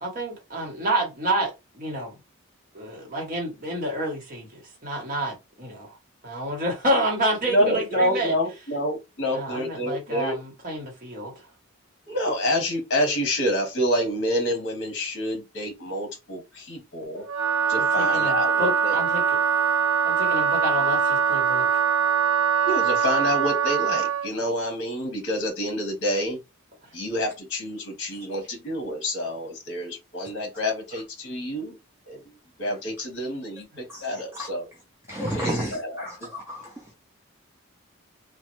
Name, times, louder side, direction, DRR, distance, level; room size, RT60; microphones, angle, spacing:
voice 1, 0.0-2.1 2.7-5.9 6.2-8.4 9.3-11.3 18.0-19.4 20.0-21.8, right 1 dB, 40° right, 1.1 m, -29 dB
voice 2, 7.4-10.4 12.1-17.2 17.7-18.9 22.6-26.4 26.9-31.8 32.1-32.2 32.6-34.7 35.2-36.3, equal, 55° left, 1.0 m, -28 dB
Wind instrument woodwind instrument, 17.2-24.3, right 7 dB, 75° right, 0.6 m, -22 dB
voice 3, 33.9-34.5 35.1-36.7, equal, 10° right, 0.5 m, -32 dB
3.1 x 2.1 x 3.0 m
head